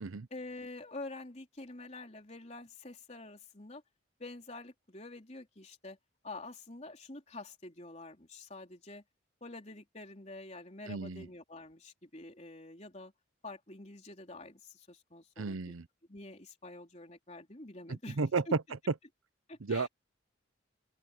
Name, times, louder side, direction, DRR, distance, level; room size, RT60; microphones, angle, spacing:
voice 1, 0.3-3.8 4.2-6.0 6.2-9.0 9.4-13.1 13.4-15.7 16.1-18.2 18.5-18.6 19.5-19.9, left 2 dB, 35° left, 3.5 m, -47 dB
voice 2, 10.9-11.3 15.4-15.9 17.9-18.4 19.6-19.9, right 4 dB, 85° right, 0.7 m, -34 dB
open air
head